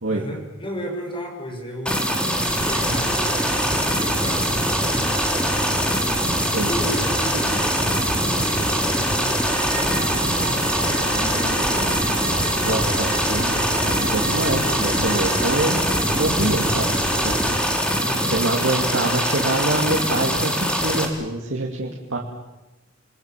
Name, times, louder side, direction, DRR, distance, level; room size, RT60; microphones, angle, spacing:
voice 1, 0.1-5.6 6.6-11.9 12.3-12.8 17.9-18.3, equal, 25° left, 1 dB, 6.7 m, -34 dB
sound 1, 1.8-21.0, equal, 5° left, 3.5 m, -23 dB
sound 2, 2.4-17.6, right 1 dB, 10° right, 5.0 m, -28 dB
Wind instrument woodwind instrument, 9.4-15.8, right 5 dB, 50° right, 4.5 m, -34 dB
voice 2, 12.6-15.8 16.1-17.0 17.2-17.4 18.3-22.2, right 2 dB, 75° right, -1 dB, 2.7 m, -25 dB
28.5 x 21.5 x 7.6 m, 0.99 s
head